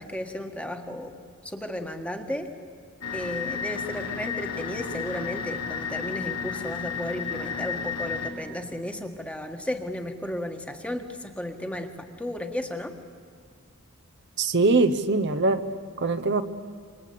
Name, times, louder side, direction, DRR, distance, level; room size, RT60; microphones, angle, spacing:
voice 1, 0.0-2.5 3.1-12.9, left 1 dB, 5° left, 5 dB, 1.6 m, -34 dB
sound 1, 3.0-8.3, left 6 dB, 85° left, 4.2 m, -32 dB
voice 2, 14.4-15.6 16.0-16.4, right 3 dB, 50° right, 9 dB, 0.9 m, -22 dB
27.5 x 25.0 x 8.6 m, 2.1 s
head